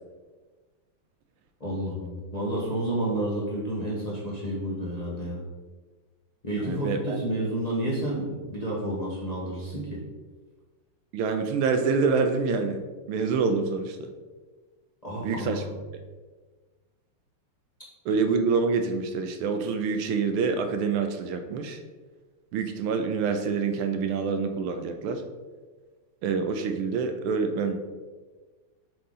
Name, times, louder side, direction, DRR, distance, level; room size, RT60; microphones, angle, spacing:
voice 1, 1.6-5.4 6.4-10.0 15.0-15.7, right 1 dB, 25° left, -6 dB, 0.9 m, -30 dB
voice 2, 6.5-7.2 11.1-12.8 13.1-14.0 15.2-15.6 18.1-21.8 22.5-25.2 26.2-27.8, right 5 dB, 80° right, 6 dB, 1.5 m, -26 dB
6.9 x 3.8 x 3.8 m, 1.3 s
omnidirectional pair, 2.4 m